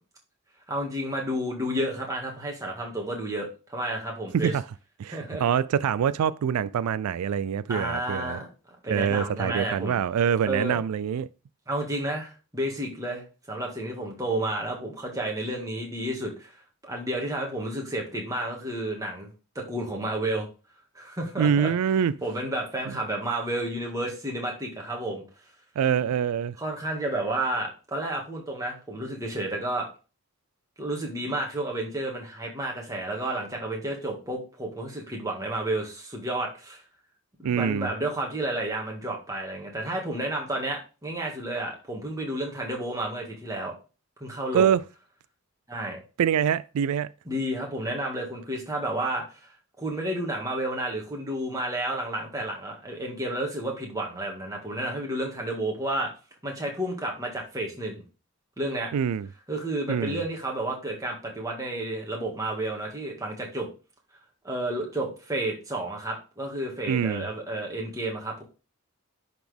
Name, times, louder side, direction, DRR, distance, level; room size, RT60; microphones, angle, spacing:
voice 1, 0.7-4.5 5.1-5.4 7.7-8.5 8.8-10.0 10.4-10.8 11.7-16.5 16.8-19.3 19.6-20.5 20.9-21.7 22.2-25.2 26.6-29.9 30.8-36.8 37.4-43.7 44.2-44.8 45.7-46.0 47.3-49.5 49.8-56.1 56.4-58.0 58.6-58.9 59.5-63.7 64.4-68.4, right 1 dB, 15° right, 1.9 m, -31 dB
voice 2, 5.0-8.4 8.9-11.3 21.4-22.1 22.9-23.0 25.8-26.5 37.4-37.9 44.5-44.8 46.2-47.1 58.9-59.3 59.9-60.2 66.9-67.2, right 8 dB, 85° right, 0.3 m, -25 dB
10.5 x 4.2 x 3.5 m
head